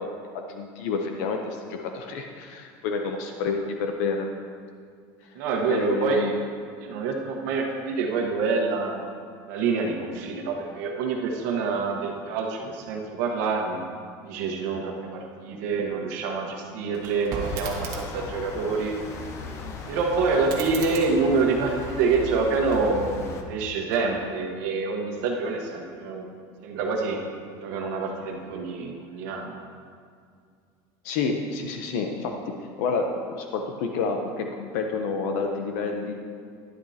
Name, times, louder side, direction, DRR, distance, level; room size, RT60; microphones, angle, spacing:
voice 1, 0.0-4.3 5.7-6.3 31.0-36.1, left 4 dB, 60° left, 4 dB, 0.7 m, -29 dB
voice 2, 5.3-6.3 6.8-9.0 9.5-13.8 14.2-18.9 19.9-23.2 23.5-26.3 26.6-27.2 27.6-29.5, right 4 dB, 65° right, 1 dB, 1.3 m, -26 dB
sound 1, 16.9-18.3 20.3-22.2 22.6-23.3, right 3 dB, 35° right, 1.4 m, -38 dB
sound 2, 17.4-23.4, left 3 dB, 25° left, 0.6 m, -38 dB
11.5 x 11.0 x 2.9 m, 2.2 s
cardioid pair, 180°, 10 cm